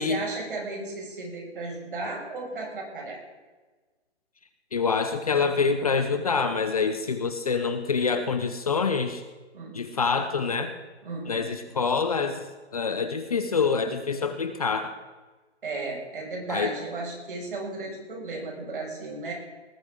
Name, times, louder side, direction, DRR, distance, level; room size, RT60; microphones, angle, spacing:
voice 1, 0.0-3.2 9.5-9.9 11.0-11.5 15.6-19.3, right 3 dB, 50° right, -1 dB, 6.0 m, -35 dB
voice 2, 4.7-9.2 9.7-10.7 11.3-12.5 12.7-14.9 16.5-16.7, left 5 dB, 35° left, 9 dB, 0.7 m, -26 dB
19.5 x 14.0 x 3.7 m, 1.3 s
hypercardioid pair, 170°, 34 cm